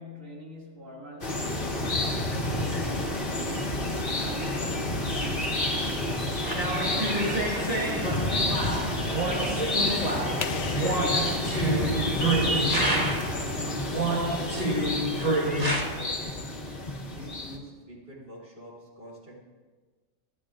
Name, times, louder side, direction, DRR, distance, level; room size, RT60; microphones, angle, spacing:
voice 1, 0.0-12.7, equal, 80° right, -3 dB, 2.8 m, -44 dB
sound 1, 1.2-17.6, left 1 dB, 40° left, 1.7 m, -29 dB
sound 2, 6.4-13.4 13.9-15.8, right 1 dB, 30° right, 1.6 m, -28 dB
sound 3, 10.4-13.1, left 7 dB, 70° left, 1.0 m, -39 dB
voice 2, 13.9-16.5 17.1-19.4, right 1 dB, 50° right, -5 dB, 3.8 m, -45 dB
27.0 x 10.5 x 2.5 m, 1.4 s
omnidirectional pair, 1.3 m